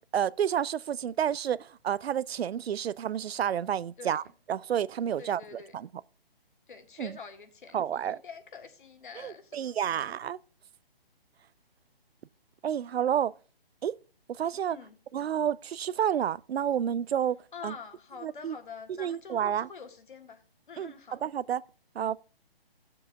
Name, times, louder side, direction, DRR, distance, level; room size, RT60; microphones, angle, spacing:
voice 1, 0.0-4.2 4.5-5.9 7.0-7.2 7.7-8.2 9.2-10.4 12.6-13.3 13.8-14.0 14.3-14.8 15.1-17.4 17.6-17.7 18.2-18.6 18.9-19.7 20.8-21.6 22.0-22.2, right 9 dB, 80° right, 0.5 m, -30 dB
voice 2, 5.2-5.7 6.7-10.1 14.7-15.0 17.5-20.4 20.7-21.2, left 5 dB, 55° left, 1.7 m, -46 dB
17.0 x 7.5 x 2.3 m
hypercardioid pair, 165°, 31 cm